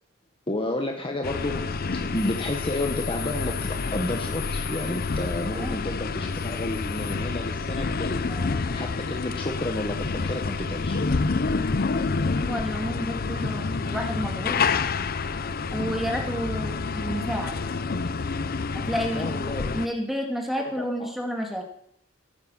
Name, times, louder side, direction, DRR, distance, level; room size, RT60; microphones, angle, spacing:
voice 1, 0.5-1.6 2.0-8.2 8.7-11.0 19.1-19.8 20.8-21.1, left 1 dB, 25° left, 3 dB, 1.3 m, -31 dB
sound 1, 1.2-19.9, left 4 dB, 45° left, 0.6 m, -28 dB
sound 2, 2.1-7.1, left 11 dB, 90° left, 1.8 m, -41 dB
voice 2, 8.3-8.9 12.3-14.6 15.7-17.6 18.7-19.3 19.7-21.6, equal, ahead, 1 dB, 2.3 m, -30 dB
15.0 x 9.7 x 5.8 m, 0.69 s
head